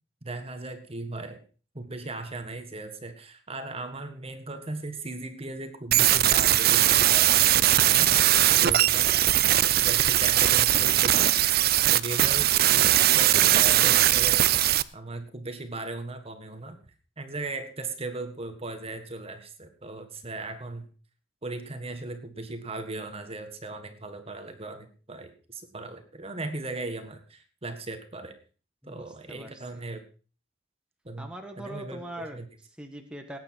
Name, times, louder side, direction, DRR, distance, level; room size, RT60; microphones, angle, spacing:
voice 1, 0.2-1.4 1.7-8.2 8.5-11.5 11.9-16.8 17.2-20.9 21.4-28.3 28.8-30.0 31.0-32.4, right 2 dB, 30° right, 8 dB, 1.6 m, -38 dB
sound 1, 5.9-14.8, right 13 dB, 50° right, 0.5 m, -20 dB
voice 2, 28.8-29.8 31.2-33.4, right 1 dB, 5° right, 3 dB, 1.5 m, -42 dB
18.5 x 9.5 x 4.6 m, 0.37 s
head